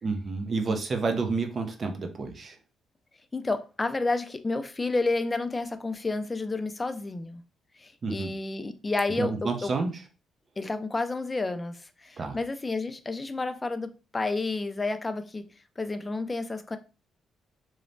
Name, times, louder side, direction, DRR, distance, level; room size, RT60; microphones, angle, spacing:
voice 1, 0.0-2.6 8.0-8.3 9.2-10.0 12.2-12.4, right 4 dB, 45° right, 0.5 m, -29 dB
voice 2, 3.3-7.4 7.8-9.7 10.6-15.5 15.8-16.8, left 3 dB, 20° left, 0.3 m, -30 dB
3.0 x 2.0 x 2.6 m
cardioid pair, 90°, 0 cm